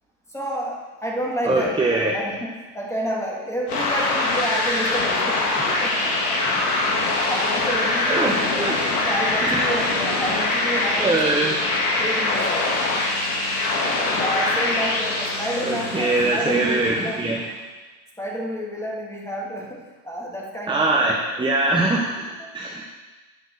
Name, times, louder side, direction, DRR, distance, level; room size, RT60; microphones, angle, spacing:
voice 1, 0.3-6.4 6.7-8.5 8.9-11.5 12.0-12.7 14.2-17.3 18.2-21.2 21.4-21.7 22.4-22.5, equal, 5° left, -3 dB, 2.7 m, -30 dB
voice 2, 1.4-2.1 5.6-5.7 8.1-8.8 9.4-9.8 11.0-11.6 15.6-17.4 20.7-22.9, right 2 dB, 10° right, -1 dB, 1.1 m, -22 dB
sound 1, 3.7-17.4, left 2 dB, 80° left, 2.6 m, -23 dB
9.7 x 6.0 x 6.6 m, 1.2 s
supercardioid pair, 105°, 44 cm